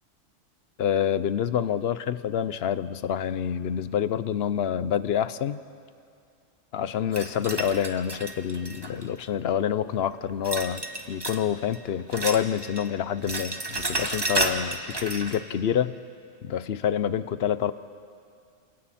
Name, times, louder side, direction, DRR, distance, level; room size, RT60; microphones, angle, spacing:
voice 1, 0.8-5.6 6.7-10.8 11.1-15.9 16.4-17.7, left 9 dB, 60° left, 14 dB, 0.8 m, -27 dB
sound 1, 7.1-9.2 10.4-11.5 11.7-12.9 13.1-15.4, right 2 dB, 20° right, 1.2 m, -31 dB
30.0 x 27.5 x 4.3 m, 2.4 s
omnidirectional pair, 1.3 m